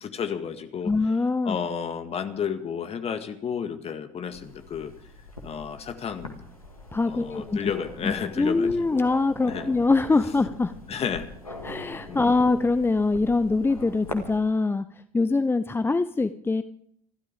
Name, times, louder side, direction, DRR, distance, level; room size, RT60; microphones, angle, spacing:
voice 1, 0.0-0.9 1.4-4.9 5.4-6.5 7.1-9.0 9.5-9.7 10.9-11.3 12.1-12.3, left 7 dB, 35° left, 8 dB, 1.8 m, -32 dB
voice 2, 0.8-1.6 6.9-7.6 8.0-10.7 11.6-16.6, left 3 dB, 10° left, 12 dB, 0.7 m, -23 dB
sound 1, 4.3-14.4, left 2 dB, 85° left, 2.1 m, -42 dB
27.5 x 12.5 x 3.6 m, 0.67 s
figure-of-eight pair, 60°, 18 cm